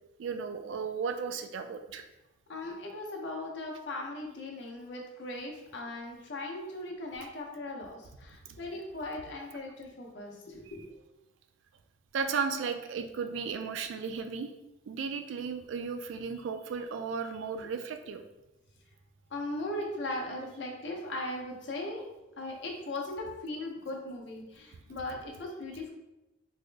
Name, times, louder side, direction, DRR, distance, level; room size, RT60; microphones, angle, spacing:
voice 1, 0.2-2.1 8.5-8.6 12.1-14.5 14.9-18.2, right 5 dB, 85° right, 7 dB, 0.3 m, -35 dB
voice 2, 2.5-10.9 19.3-22.0 22.4-25.9, left 2 dB, 65° left, 0 dB, 0.7 m, -38 dB
3.5 x 2.0 x 3.2 m, 0.97 s
head